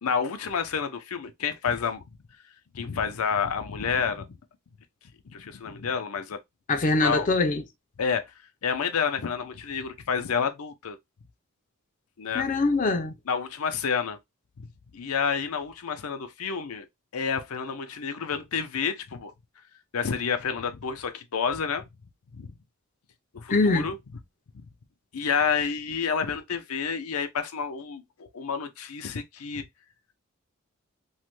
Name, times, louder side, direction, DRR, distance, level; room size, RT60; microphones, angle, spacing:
voice 1, 0.0-2.0 2.7-4.4 5.3-6.4 6.7-6.8 7.0-7.3 8.0-8.3 8.6-11.0 12.2-12.5 13.3-14.2 14.6-14.7 14.9-16.9 17.1-19.3 19.9-21.8 22.3-22.5 23.3-24.0 24.5-24.7 25.1-29.6, left 6 dB, 85° left, 0.6 m, -29 dB
voice 2, 6.7-7.6 12.3-13.1 23.5-23.9, left 3 dB, 35° left, 0.5 m, -23 dB
3.1 x 2.2 x 3.0 m
head